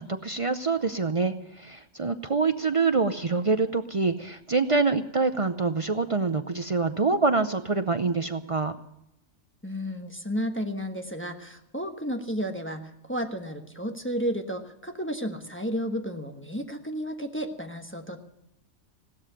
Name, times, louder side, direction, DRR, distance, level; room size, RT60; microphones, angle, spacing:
voice 1, 0.0-8.8, right 4 dB, 50° right, 10 dB, 0.4 m, -26 dB
voice 2, 9.6-18.2, equal, 10° left, 4 dB, 1.1 m, -32 dB
16.5 x 12.5 x 6.8 m, 0.82 s
omnidirectional pair, 1.4 m